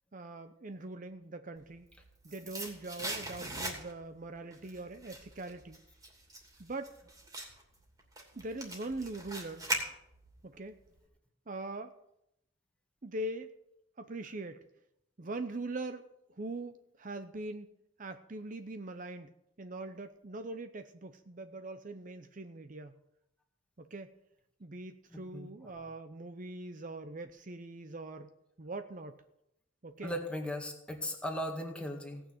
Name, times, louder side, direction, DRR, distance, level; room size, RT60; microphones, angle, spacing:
voice 1, 0.1-1.9 2.2-5.8 6.6-6.9 8.3-9.7 10.4-10.8 11.5-11.9 13.0-13.5 14.0-14.6 15.2-19.3 19.6-22.9 23.8-24.1 24.6-28.3 28.6-29.2 29.8-30.1, right 2 dB, 40° right, 9 dB, 0.7 m, -42 dB
sound 1, 1.7-4.2 4.5-10.4 10.7-10.8, right 1 dB, 20° right, 2.7 m, -40 dB
voice 2, 25.1-25.9 30.0-32.2, equal, 5° left, 2 dB, 1.9 m, -38 dB
17.5 x 6.3 x 9.1 m, 0.81 s
head